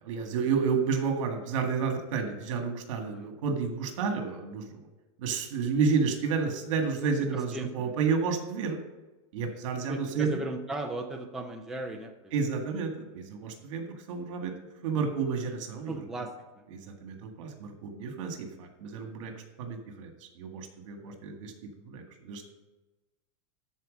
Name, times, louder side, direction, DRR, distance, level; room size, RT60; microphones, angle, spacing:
voice 1, 0.0-4.8 5.2-8.8 9.3-10.4 12.3-14.5 14.8-15.9 17.0-19.3 19.6-22.4, right 5 dB, 70° right, 5 dB, 1.8 m, -31 dB
voice 2, 7.5-7.9 9.9-12.3 15.9-16.6 19.0-19.2 21.0-21.2, right 1 dB, 5° right, 1 dB, 0.5 m, -37 dB
12.5 x 4.7 x 5.3 m, 1.1 s
supercardioid pair, 165°, 17 cm